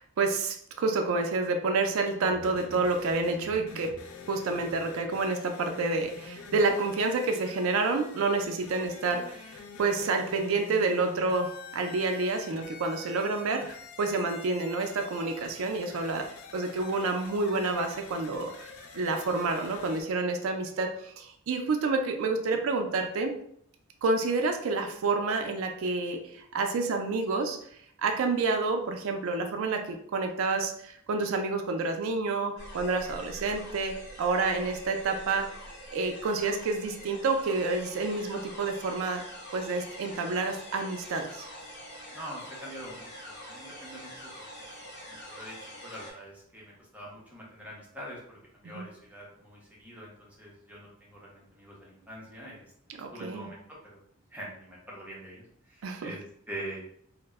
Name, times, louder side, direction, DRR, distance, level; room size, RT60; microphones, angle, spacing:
voice 1, 0.0-3.9 4.3-16.3 16.5-18.7 18.9-23.3 24.0-27.6 28.0-35.5 35.9-39.2 39.5-41.5 48.7-48.8 53.0-53.5 55.8-56.1, right 3 dB, 65° right, 4 dB, 0.4 m, -29 dB
sound 1, 2.2-20.0, left 4 dB, 65° left, 0.4 m, -46 dB
sound 2, 32.6-46.1, equal, 50° left, 0.8 m, -45 dB
voice 2, 42.1-44.3 45.1-54.0 54.3-56.2 56.5-56.8, right 1 dB, 5° right, -5 dB, 0.6 m, -44 dB
2.1 x 2.0 x 3.3 m, 0.67 s
head